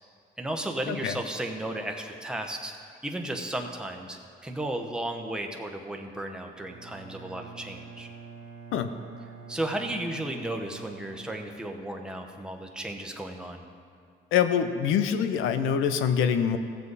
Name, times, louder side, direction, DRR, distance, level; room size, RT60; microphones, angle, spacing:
voice 1, 0.4-2.8 3.0-8.1 9.5-13.6, right 1 dB, 5° right, 2 dB, 1.0 m, -34 dB
Bowed string instrument, 6.5-12.0, right 5 dB, 80° right, 1.1 m, -47 dB
voice 2, 14.3-16.6, left 8 dB, 85° left, 9 dB, 0.7 m, -25 dB
14.5 x 7.5 x 4.1 m, 2.4 s
cardioid pair, 90°, 20 cm